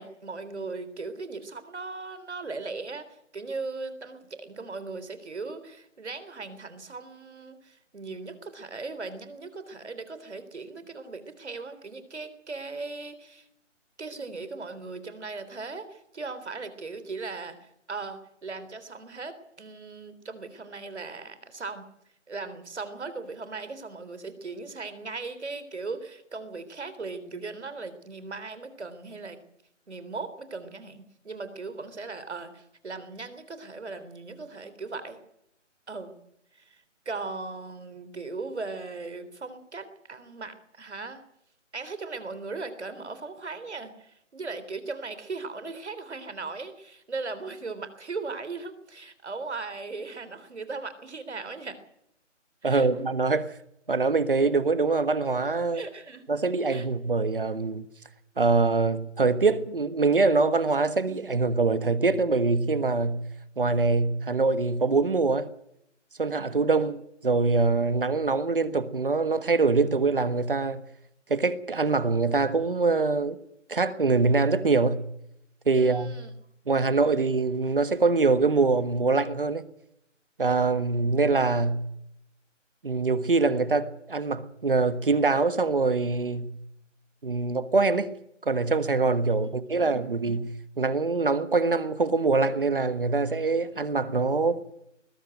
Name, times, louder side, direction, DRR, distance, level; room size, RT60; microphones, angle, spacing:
voice 1, 0.0-13.5 14.0-21.9 22.3-29.4 29.9-35.2 35.9-36.2 36.5-41.2 41.7-51.8 52.6-52.9 55.7-56.2 56.7-56.9 75.8-76.3 89.4-89.5, right 3 dB, 60° right, 3.7 m, -38 dB
voice 2, 52.6-53.5 53.9-55.8 56.3-57.9 58.4-63.2 63.6-65.5 66.2-70.8 71.3-73.4 73.7-75.0 75.7-76.2 76.7-79.6 80.4-81.8 82.8-86.5 87.2-88.1 88.4-94.6, right 3 dB, 45° right, 1.5 m, -24 dB
20.5 x 14.0 x 9.1 m
hypercardioid pair, 180°, 37 cm